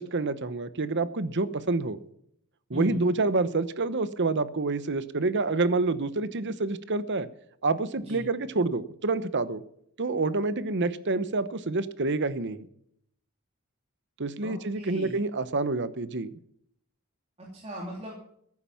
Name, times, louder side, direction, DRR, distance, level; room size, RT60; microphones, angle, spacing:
voice 1, 0.0-2.0 2.7-7.3 7.6-9.6 10.0-12.7 14.2-16.3, right 3 dB, 55° right, 15 dB, 0.9 m, -28 dB
voice 2, 14.4-15.2 17.4-18.1, equal, 30° right, -3 dB, 3.0 m, -38 dB
14.5 x 11.0 x 5.8 m, 0.68 s
head